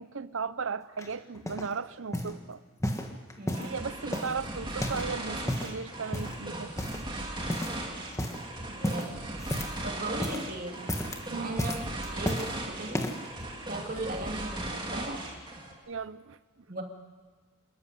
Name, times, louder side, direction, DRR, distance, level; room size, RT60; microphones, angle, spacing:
voice 1, 0.0-2.6 3.6-6.7 11.3-11.7 15.9-16.4, right 5 dB, 60° right, 0.7 m, -36 dB
sound 1, 1.0-1.7 2.1-2.4 2.8-3.8 4.1-5.1 5.4-5.8 6.1-6.4 6.8-7.2 7.5-7.8 8.1-8.4 8.8-9.9 10.1-10.5 10.8-11.2 11.6-12.5 12.9-13.3 13.9-14.0, left 1 dB, 15° left, 1.5 m, -33 dB
voice 2, 3.4-3.9 8.7-9.3 9.8-10.8 11.4-13.1 13.7-15.3 16.7-16.8, right 2 dB, 40° right, 2.5 m, -37 dB
sound 2, 3.5-15.8, right 1 dB, 20° right, 2.7 m, -38 dB
27.5 x 13.5 x 10.0 m
head